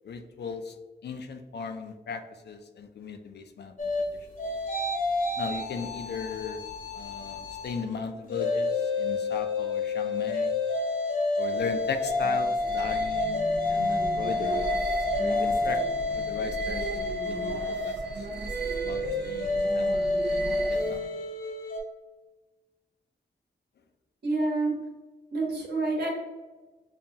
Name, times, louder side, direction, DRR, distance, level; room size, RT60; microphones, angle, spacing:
voice 1, 0.0-0.8 1.0-3.7 5.4-6.6 6.9-10.5 11.4-14.7 15.2-15.8 16.1-16.9 17.3-18.3 18.8-20.4 20.7-21.0, left 5 dB, 70° left, 7 dB, 0.5 m, -37 dB
sound 1, 3.8-7.8 8.2-21.8, left 2 dB, 50° left, 0.8 m, -29 dB
she means it, 11.4-21.2, right 3 dB, 85° right, 0.6 m, -36 dB
voice 2, 24.2-24.7 25.3-26.1, right 2 dB, 70° right, -2 dB, 1.3 m, -27 dB
5.4 x 2.3 x 2.7 m, 1.2 s
wide cardioid pair, 150°, 18 cm